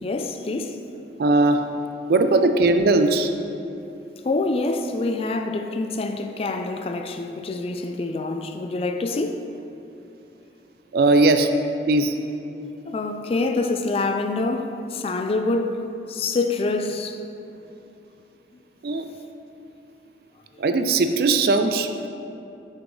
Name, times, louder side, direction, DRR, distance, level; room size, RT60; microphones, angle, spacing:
voice 1, 0.0-0.8 4.2-9.5 12.9-17.2, left 3 dB, 35° left, 0.3 m, -26 dB
voice 2, 1.2-1.7 2.1-3.3 10.9-11.5 11.9-12.2 18.8-19.1 20.6-21.9, right 2 dB, 55° right, 0.4 m, -19 dB
6.2 x 6.0 x 3.7 m
head